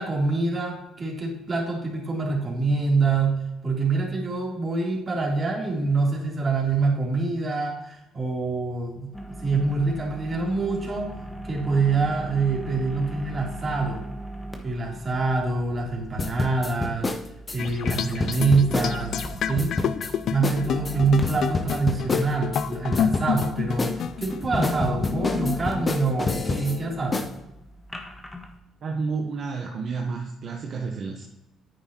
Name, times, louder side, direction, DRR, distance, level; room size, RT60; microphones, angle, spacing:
voice 1, 0.0-9.1 9.4-11.1 11.4-14.0 14.6-17.1 17.5-19.7 20.3-27.3, right 3 dB, 35° right, -2 dB, 3.0 m, -25 dB
sound 1, 9.1-28.6, right 1 dB, 10° left, 1.4 m, -40 dB
sound 2, 16.2-19.3 19.6-20.1 20.4-20.6 20.8-22.6 22.9-23.5 23.8-26.8 27.1-27.3, left 3 dB, 25° left, 0.8 m, -28 dB
sound 3, 17.6-27.0, left 8 dB, 60° left, 0.4 m, -30 dB
voice 2, 28.8-31.2, right 4 dB, 55° right, 1 dB, 1.0 m, -30 dB
9.6 x 8.3 x 2.9 m, 0.90 s
cardioid pair, 100°, 0 cm